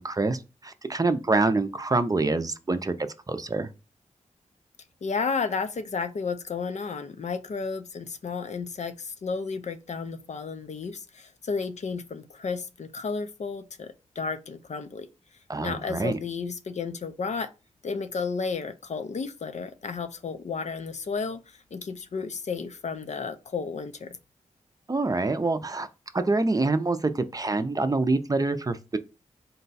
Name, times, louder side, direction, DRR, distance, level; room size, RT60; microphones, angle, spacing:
voice 1, 0.0-3.7 15.5-16.1 24.9-25.9 26.1-29.0, right 3 dB, 25° right, 0.5 m, -26 dB
voice 2, 5.0-15.1 15.6-17.5 17.8-24.2, left 5 dB, 60° left, 0.5 m, -32 dB
3.9 x 2.2 x 4.0 m
cardioid pair, 55°, 13 cm